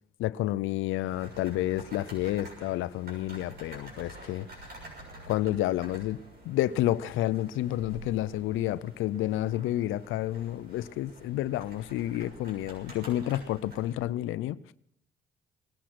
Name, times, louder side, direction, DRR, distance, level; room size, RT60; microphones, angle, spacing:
voice 1, 0.2-4.5 5.3-6.2 6.5-14.6, left 14 dB, 90° left, 0.5 m, -30 dB
sound 1, 1.0-14.0, right 1 dB, 50° right, 6.8 m, -48 dB
19.0 x 11.5 x 6.0 m
cardioid pair, 90°, 20 cm